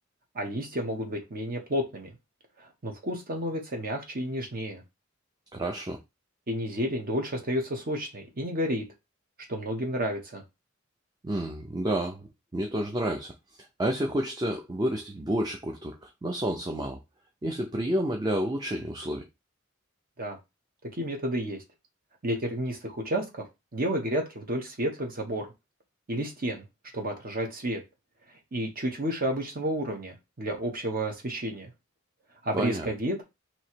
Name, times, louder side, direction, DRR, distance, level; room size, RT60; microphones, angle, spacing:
voice 1, 0.3-2.1 2.6-4.8 6.5-8.8 9.5-10.4 20.2-20.4 20.9-21.6 22.2-23.4 23.7-25.5 26.1-26.6 26.9-27.8 28.5-31.7 32.4-33.2, equal, 45° right, 1.0 m, -31 dB
voice 2, 5.5-6.0 11.2-12.3 12.5-13.3 13.8-17.0 17.4-19.3 32.5-32.9, right 1 dB, 20° right, 0.5 m, -30 dB
3.1 x 2.8 x 4.4 m
head